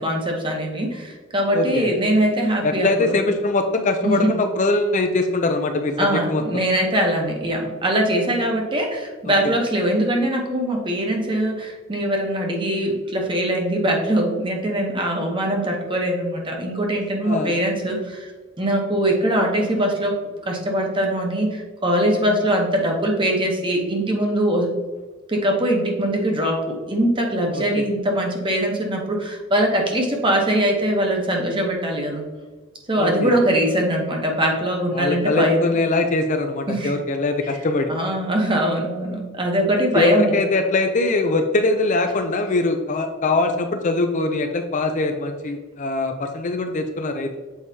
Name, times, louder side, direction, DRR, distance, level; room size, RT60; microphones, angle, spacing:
voice 1, 0.0-3.2 4.0-4.3 6.0-18.3 18.6-20.2 20.4-24.7 25.3-32.2 32.9-35.7 36.7-36.9 37.9-40.3, right 1 dB, 20° right, 1 dB, 1.0 m, -22 dB
voice 2, 1.5-1.9 2.6-6.4 9.3-9.4 17.2-17.5 27.5-27.8 33.0-33.3 34.9-37.9 39.9-47.3, left 2 dB, 35° left, 5 dB, 0.4 m, -22 dB
7.1 x 4.8 x 2.8 m, 1.3 s
head